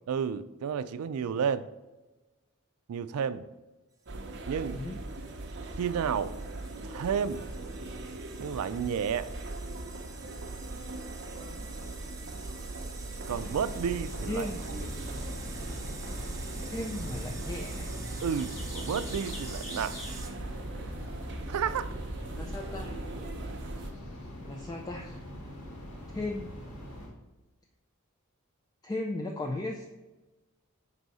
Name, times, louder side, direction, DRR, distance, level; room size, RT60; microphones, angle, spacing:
voice 1, 0.1-1.7 2.9-3.5 4.5-4.8 5.8-6.3 6.8-7.4 8.4-9.3 13.3-14.5 18.2-20.0 21.5-21.9, right 7 dB, 90° right, 14 dB, 0.4 m, -31 dB
sound 1, 4.1-23.9, right 2 dB, 55° right, 0.7 m, -40 dB
sound 2, 4.2-20.3, right 4 dB, 15° right, 0.8 m, -48 dB
sound 3, 13.2-27.1, left 1 dB, 80° left, 1.7 m, -43 dB
voice 2, 14.3-14.6 16.6-17.9 22.4-23.0 24.4-25.2 26.1-26.5 28.8-29.9, left 2 dB, 15° left, 3 dB, 0.3 m, -36 dB
5.4 x 4.0 x 4.8 m, 1.1 s
head